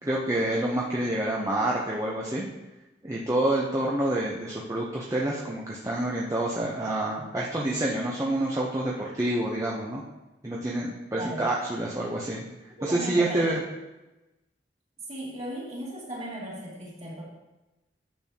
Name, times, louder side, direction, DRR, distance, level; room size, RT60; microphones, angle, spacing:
voice 1, 0.0-2.5 3.0-10.0 10.4-12.5 12.8-13.5, right 1 dB, 20° right, -4 dB, 0.8 m, -28 dB
voice 2, 11.2-11.5 12.8-13.7 15.1-17.2, right 1 dB, 40° right, -5 dB, 2.5 m, -36 dB
10.5 x 6.8 x 2.9 m, 1.0 s
head